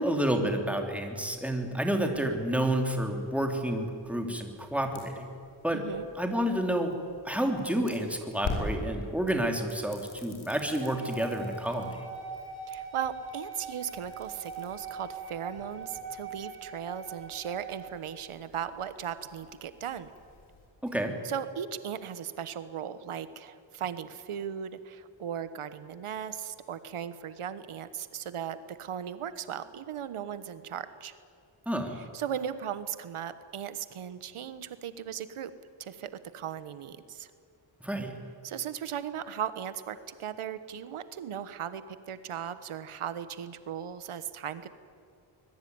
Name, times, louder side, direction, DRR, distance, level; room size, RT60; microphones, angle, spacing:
voice 1, 0.0-5.4 5.6-5.8 6.1-7.0 7.2-12.0 20.8-21.2 31.7-32.0 37.8-38.2, right 1 dB, 5° right, 3 dB, 3.0 m, -30 dB
sound 1, 1.3-20.7, left 2 dB, 75° left, 6.8 m, -45 dB
voice 2, 5.7-6.1 12.7-20.1 21.2-31.1 32.1-35.5 35.8-37.3 38.4-44.7, right 9 dB, 85° right, 13 dB, 1.3 m, -37 dB
sound 2, 10.7-18.2, right 5 dB, 50° right, 3.1 m, -42 dB
25.0 x 21.0 x 9.5 m, 2.4 s
wide cardioid pair, 140°, 49 cm